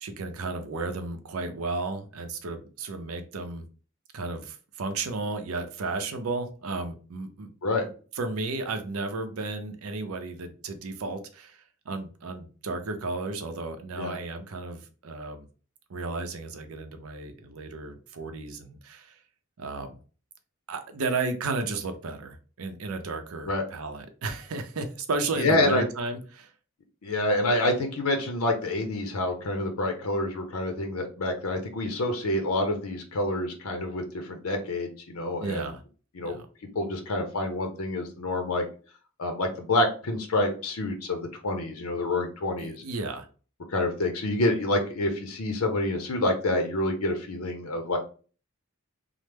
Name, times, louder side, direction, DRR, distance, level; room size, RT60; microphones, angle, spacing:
voice 1, 0.0-3.6 4.1-7.5 7.8-15.4 15.9-19.2 19.6-20.0 20.7-26.5 35.4-35.8 36.2-36.5 42.6-43.3, right 3 dB, 85° right, 7 dB, 0.6 m, -33 dB
voice 2, 25.4-25.8 27.0-35.7 36.1-36.3 36.7-38.7 39.2-42.8 43.7-48.0, left 1 dB, 85° left, 5 dB, 0.6 m, -27 dB
3.1 x 2.0 x 3.3 m, 0.38 s
head